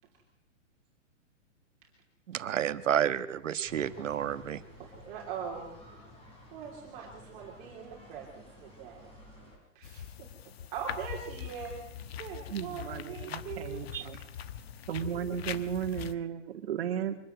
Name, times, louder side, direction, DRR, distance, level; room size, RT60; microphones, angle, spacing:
voice 1, 2.3-4.6 13.9-14.0, right 9 dB, 85° right, 12 dB, 1.5 m, -30 dB
sound 1, 3.7-9.6, left 1 dB, 15° left, 4.6 m, -52 dB
voice 2, 4.8-5.7 6.5-9.1 9.7-11.8 12.2-13.9, right 7 dB, 25° right, -2 dB, 3.1 m, -42 dB
sound 2, 9.8-16.1, left 9 dB, 55° left, 1.2 m, -42 dB
voice 3, 12.5-14.2 14.9-17.1, right 9 dB, 55° right, 7 dB, 2.4 m, -35 dB
24.0 x 12.5 x 9.3 m, 0.85 s
hypercardioid pair, 170°, 37 cm